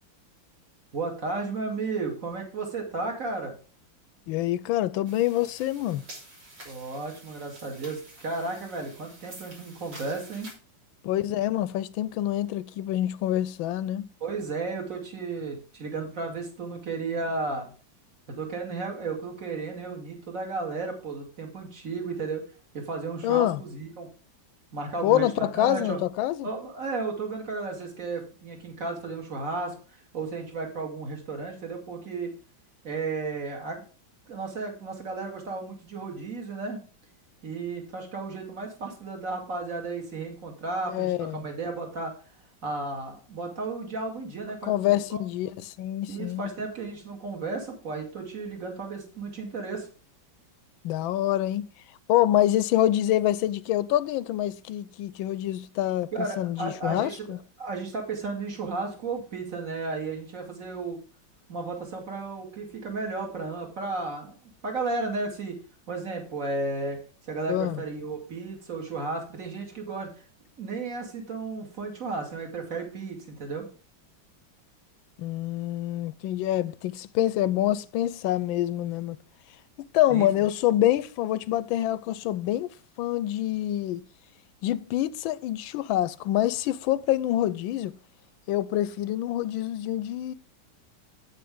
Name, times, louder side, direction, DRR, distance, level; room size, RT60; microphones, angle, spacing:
voice 1, 0.9-3.5 6.6-10.5 14.2-17.7 18.3-22.4 22.7-24.1 24.7-26.0 26.4-29.7 30.1-32.3 32.8-33.8 34.3-36.8 37.4-42.1 42.6-45.2 46.1-49.9 56.1-57.2 57.6-61.0 61.5-65.6 65.9-67.0 67.2-70.1 70.6-73.7 80.1-80.3, right 3 dB, 45° right, 2.7 m, -33 dB
voice 2, 4.3-6.0 11.0-14.1 23.2-23.6 25.0-26.5 40.9-41.4 44.6-46.5 50.8-51.7 52.1-57.4 67.5-67.8 75.2-79.2 79.9-82.7 83.0-84.0 84.6-87.9 88.5-90.3, left 13 dB, 90° left, 1.4 m, -26 dB
sound 1, 5.0-10.5, right 1 dB, 65° right, 4.1 m, -48 dB
9.0 x 8.6 x 3.6 m
omnidirectional pair, 2.1 m